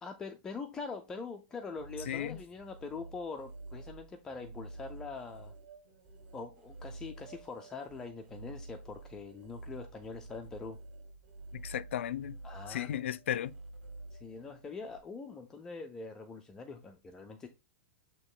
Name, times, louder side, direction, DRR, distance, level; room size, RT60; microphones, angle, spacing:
voice 1, 0.0-5.5 6.3-10.8 12.4-12.9 14.1-17.5, left 4 dB, 10° left, 0.4 m, -43 dB
sound 1, 1.5-15.0, right 2 dB, 50° right, 2.4 m, -49 dB
voice 2, 2.1-2.4 11.5-12.4 12.7-13.5, left 11 dB, 75° left, 0.5 m, -35 dB
8.6 x 2.9 x 3.7 m
supercardioid pair, 180°, 7 cm